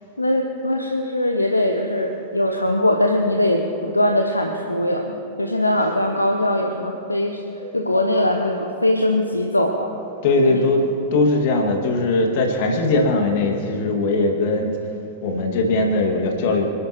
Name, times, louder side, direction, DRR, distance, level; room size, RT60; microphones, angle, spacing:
voice 1, 0.2-7.4 7.7-9.9 10.5-10.6, left 1 dB, 85° left, 3 dB, 0.8 m, -21 dB
voice 2, 7.6-8.0 10.2-10.8 11.1-14.7 15.2-16.7, left 2 dB, 50° left, 2 dB, 2.1 m, -20 dB
26.5 x 11.0 x 3.1 m, 2.7 s
figure-of-eight pair, 90°, 0 cm